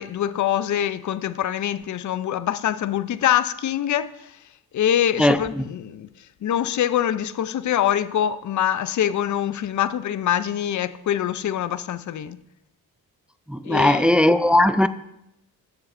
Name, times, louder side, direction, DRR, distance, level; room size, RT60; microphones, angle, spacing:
voice 1, 0.0-4.3 4.7-6.1 6.4-12.4 13.6-14.2, left 10 dB, 50° left, 0.5 m, -24 dB
voice 2, 5.2-5.6 13.5-14.9, left 1 dB, 5° right, 0.4 m, -18 dB
16.5 x 6.9 x 2.6 m
cardioid pair, 70°, 38 cm